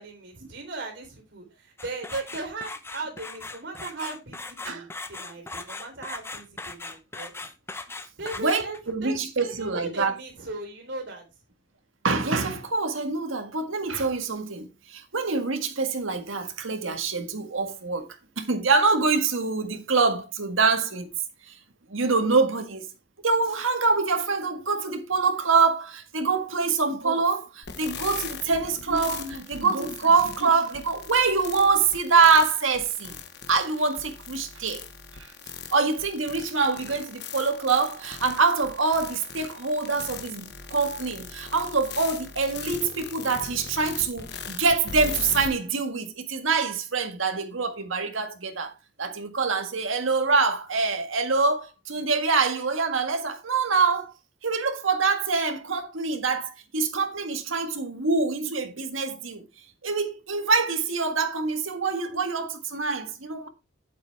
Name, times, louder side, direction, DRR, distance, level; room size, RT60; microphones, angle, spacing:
voice 1, 0.0-7.3 8.2-11.2, right 2 dB, 65° right, 3.9 m, -37 dB
sound 1, 1.8-8.9, left 3 dB, 10° left, 0.7 m, -39 dB
voice 2, 8.4-10.1 12.0-18.1 18.4-21.1 21.9-22.8 23.2-33.1 33.5-34.8 35.7-48.7 49.0-54.1 54.4-59.4 59.8-63.5, right 4 dB, 90° right, 1.7 m, -25 dB
sound 2, 27.6-45.5, left 6 dB, 55° left, 1.3 m, -39 dB
8.8 x 8.1 x 3.5 m
head